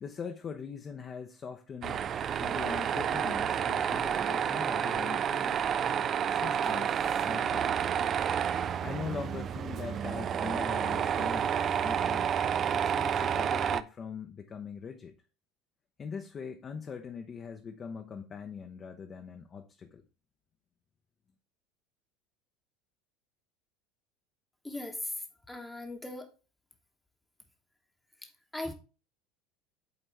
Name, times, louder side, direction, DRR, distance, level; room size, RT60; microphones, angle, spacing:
voice 1, 0.0-2.0 2.4-5.6 6.3-7.8 8.8-12.3 12.7-15.2 16.0-20.0, left 6 dB, 35° left, 0.7 m, -42 dB
Tools, 1.8-13.8, right 8 dB, 40° right, 0.4 m, -30 dB
voice 2, 24.6-25.2 25.5-26.3 28.5-28.7, left 2 dB, 10° left, 1.0 m, -38 dB
7.9 x 4.1 x 3.3 m
figure-of-eight pair, 70°, 0 cm